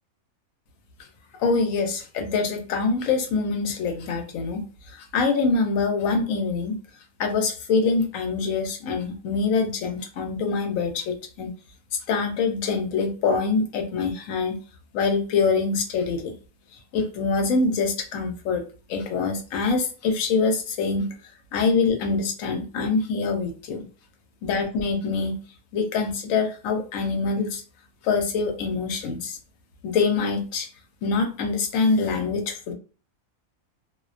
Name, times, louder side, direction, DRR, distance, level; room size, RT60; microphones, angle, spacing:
voice 1, 1.4-6.8 7.2-11.5 12.1-14.6 14.9-16.3 16.9-18.6 18.9-21.1 21.5-23.8 24.4-25.4 25.7-27.6 28.0-29.4 29.8-30.7 31.0-32.7, left 4 dB, 75° left, 4 dB, 1.0 m, -24 dB
2.5 x 2.1 x 2.4 m, 0.36 s
omnidirectional pair, 1.4 m